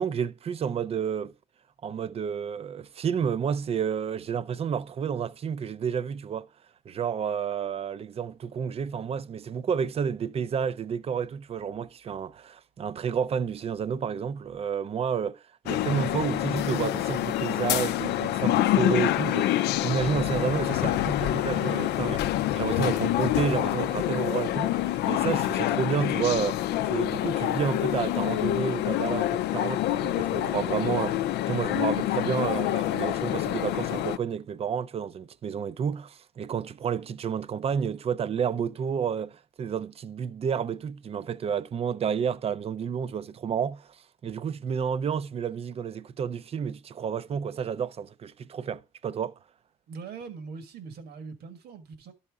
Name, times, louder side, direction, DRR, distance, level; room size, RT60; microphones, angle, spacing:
voice 1, 0.0-1.3 1.8-6.5 6.9-19.6 19.8-22.2 22.5-44.0 44.2-49.3, right 7 dB, 35° right, 0.5 m, -30 dB
sound 1, 15.7-34.2, left 14 dB, 75° left, 0.5 m, -27 dB
voice 2, 21.5-21.9 49.9-52.1, right 5 dB, 70° right, 1.5 m, -41 dB
12.0 x 5.6 x 3.5 m
cardioid pair, 110°, 17 cm